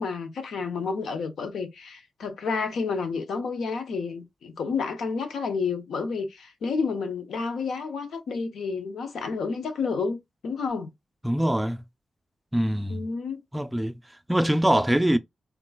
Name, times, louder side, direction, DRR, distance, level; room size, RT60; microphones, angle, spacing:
voice 1, 0.0-10.9 12.9-13.4, left 5 dB, 90° left, 0.7 m, -30 dB
voice 2, 11.2-11.8 12.5-13.0 13.5-14.0 14.3-15.2, right 1 dB, 10° right, 0.3 m, -23 dB
3.7 x 2.2 x 2.3 m
cardioid pair, 80°, 0 cm